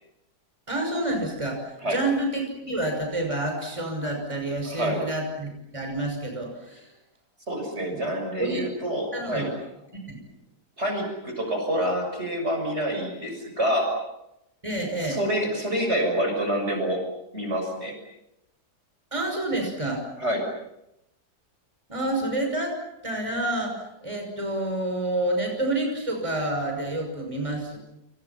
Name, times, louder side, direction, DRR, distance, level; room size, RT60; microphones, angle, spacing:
voice 1, 0.7-6.9 7.9-8.1 8.4-8.7 9.1-9.5 10.1-10.2 14.6-15.2 19.1-20.0 21.9-22.7 23.0-27.8, right 1 dB, 20° right, 3 dB, 6.1 m, -28 dB
voice 2, 4.7-5.0 7.5-9.5 10.8-14.0 15.0-17.0 17.3-18.0 20.2-20.5, right 1 dB, 40° right, 4 dB, 6.8 m, -27 dB
30.0 x 29.5 x 5.8 m, 0.85 s
omnidirectional pair, 1.8 m